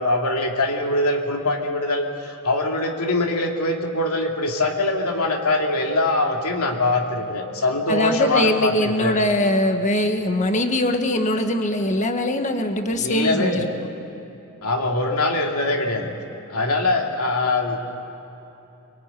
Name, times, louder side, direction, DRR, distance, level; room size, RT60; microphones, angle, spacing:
voice 1, 0.0-9.2 13.0-13.7 14.6-16.1 16.5-17.8, left 2 dB, 75° left, 2 dB, 2.7 m, -23 dB
voice 2, 7.9-13.7, left 1 dB, 35° left, 6 dB, 1.6 m, -22 dB
25.0 x 22.5 x 9.2 m, 3.0 s
head